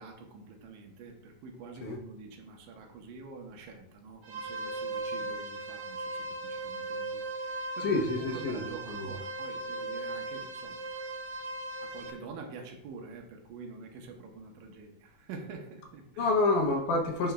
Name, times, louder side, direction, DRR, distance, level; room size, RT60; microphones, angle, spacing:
voice 1, 0.0-10.8 11.8-16.3, right 4 dB, 85° right, 2.5 m, -47 dB
sound 1, 4.2-12.1, right 2 dB, 65° right, 1.5 m, -38 dB
voice 2, 7.8-9.1 16.2-17.3, left 2 dB, 75° left, 2.1 m, -28 dB
10.0 x 4.4 x 2.3 m
omnidirectional pair, 4.0 m